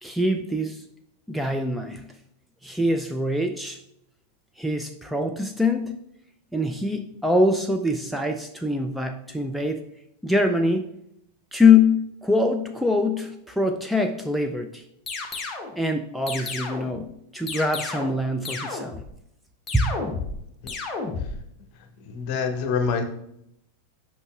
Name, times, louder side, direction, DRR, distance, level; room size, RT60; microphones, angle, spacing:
voice 1, 0.0-0.8 1.3-2.1 2.6-3.8 4.6-5.9 6.5-9.8 10.2-10.9 11.5-14.8 15.7-19.0 19.7-20.0, left 3 dB, ahead, 4 dB, 0.4 m, -23 dB
sound 1, 15.1-15.7 16.3-17.0 17.5-18.2 18.5-19.1 19.7-20.4 20.7-21.4, left 4 dB, 20° left, 1.1 m, -32 dB
voice 2, 22.1-23.0, left 5 dB, 45° left, 7 dB, 0.9 m, -26 dB
7.9 x 5.4 x 2.4 m, 0.77 s
figure-of-eight pair, 90°, 0 cm